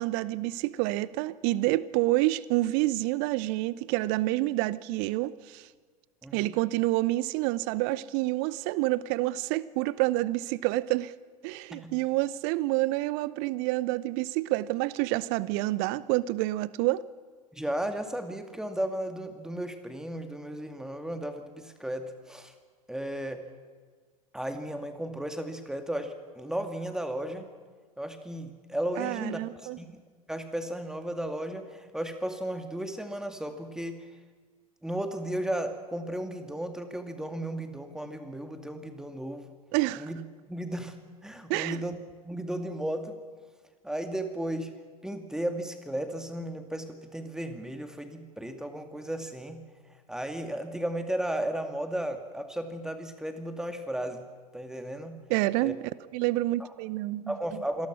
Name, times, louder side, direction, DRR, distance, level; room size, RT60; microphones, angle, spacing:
voice 1, 0.0-5.7 6.3-11.1 11.4-17.0 29.0-29.8 39.7-40.1 41.5-41.8 55.3-57.6, right 18 dB, 50° right, 19 dB, 0.8 m, -28 dB
voice 2, 6.2-6.5 11.7-11.9 17.5-22.5 22.9-23.4 24.3-27.5 28.0-30.0 30.3-34.0 34.8-39.4 40.0-40.2 40.5-41.0 41.2-42.0 42.2-43.2 43.8-44.7 45.0-49.6 50.1-54.3 54.5-55.2 55.6-55.7 56.6-56.7 57.3-57.9, right 1 dB, 5° right, 7 dB, 2.3 m, -34 dB
27.0 x 19.0 x 6.2 m, 1.5 s
figure-of-eight pair, 80°, 20 cm